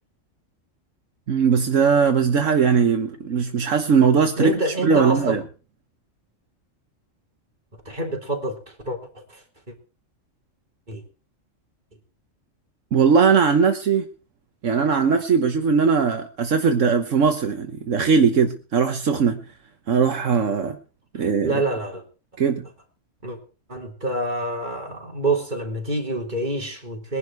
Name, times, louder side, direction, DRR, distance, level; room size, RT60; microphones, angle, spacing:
voice 1, 1.3-4.6 4.8-5.4 12.9-14.1 14.6-19.4 19.9-20.8 21.1-21.6 22.4-22.7, right 6 dB, 75° right, 1.5 m, -19 dB
voice 2, 4.4-5.4 7.9-9.7 10.9-11.0 21.1-22.0 23.2-23.4 23.7-27.2, right 2 dB, 35° right, 3.8 m, -27 dB
21.0 x 11.0 x 4.7 m
omnidirectional pair, 1.3 m